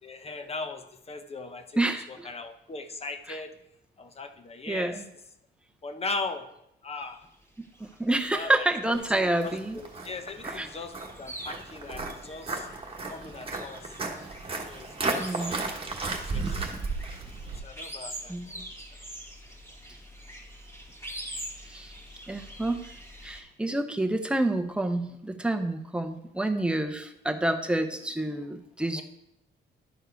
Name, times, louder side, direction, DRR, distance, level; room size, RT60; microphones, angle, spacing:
voice 1, 0.0-1.8 2.1-3.5 4.0-5.0 5.8-6.5 6.8-7.2 8.3-12.7 13.0-13.9 14.7-14.9 15.3-15.5 16.3-16.7 17.4-18.6 29.0-29.1, left 3 dB, 30° left, 8 dB, 0.9 m, -39 dB
voice 2, 1.8-2.3 3.3-3.4 4.7-5.0 7.8-9.8 10.4-10.7 15.2-15.6 18.3-18.6 21.7-22.0 22.3-22.8 23.2-29.0, right 2 dB, 5° right, 5 dB, 0.8 m, -28 dB
sound 1, 7.1-23.4, right 1 dB, 15° left, 2.1 m, -45 dB
Walk footsteps, 9.0-17.6, right 3 dB, 30° right, 1.3 m, -34 dB
11.5 x 4.6 x 4.6 m, 0.82 s
cardioid pair, 90°, 20 cm